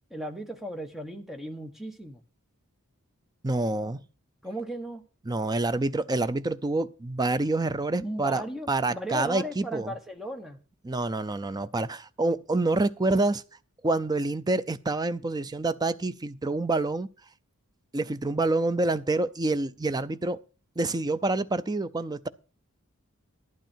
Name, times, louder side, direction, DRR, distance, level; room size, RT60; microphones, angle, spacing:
voice 1, 0.1-2.2 4.4-5.0 8.0-10.6, equal, ahead, 1.3 m, -36 dB
voice 2, 3.4-4.0 5.3-8.4 8.7-9.9 10.8-13.4 13.8-17.1 17.9-20.4 20.8-22.3, right 2 dB, 20° right, 0.5 m, -27 dB
12.0 x 11.0 x 4.5 m
head